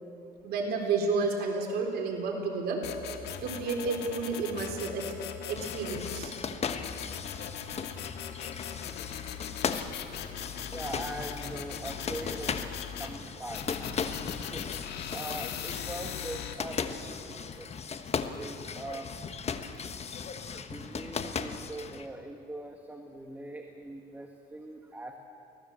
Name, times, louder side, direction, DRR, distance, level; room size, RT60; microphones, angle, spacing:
voice 1, 0.4-2.8 3.4-5.1 5.5-6.3, right 4 dB, 70° right, 1 dB, 4.0 m, -31 dB
sound 1, 2.8-6.3 6.7-13.1 13.5-16.5, left 9 dB, 80° left, 1.8 m, -40 dB
sound 2, 5.5-22.1, left 6 dB, 40° left, 1.2 m, -37 dB
voice 2, 10.1-12.7 13.0-13.8 14.5-14.7 15.1-17.7 18.3-19.1 20.5-25.2, right 1 dB, 10° right, 3 dB, 1.6 m, -42 dB
24.5 x 18.5 x 7.6 m, 2.6 s
cardioid pair, 110°, 17 cm